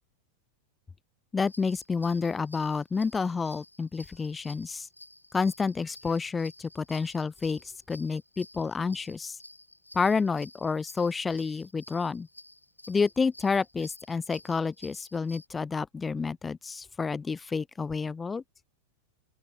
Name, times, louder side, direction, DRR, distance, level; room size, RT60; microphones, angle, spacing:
voice 1, 1.3-4.9 5.3-7.6 7.9-9.4 9.9-12.3 12.9-18.4, left 5 dB, 15° left, 0.4 m, -29 dB
sound 1, 1.5-15.5, left 1 dB, 85° left, 3.0 m, -52 dB
open air
figure-of-eight pair, 90°, 0 cm